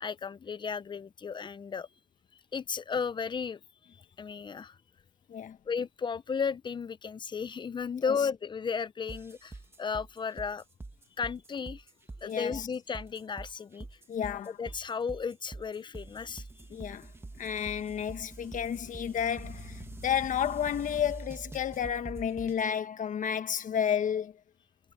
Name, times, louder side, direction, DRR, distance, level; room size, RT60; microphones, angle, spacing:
voice 1, 0.0-1.9 2.5-3.6 3.9-4.8 5.7-10.6 11.2-11.8 12.2-13.9 14.5-16.5, left 6 dB, 25° left, 0.8 m, -34 dB
sound 1, 9.1-22.7, right 2 dB, 15° right, 1.6 m, -45 dB
voice 2, 12.2-12.7 14.1-14.5 16.7-17.1 17.4-24.3, left 8 dB, 50° left, 1.4 m, -31 dB
cardioid pair, 110°, 17 cm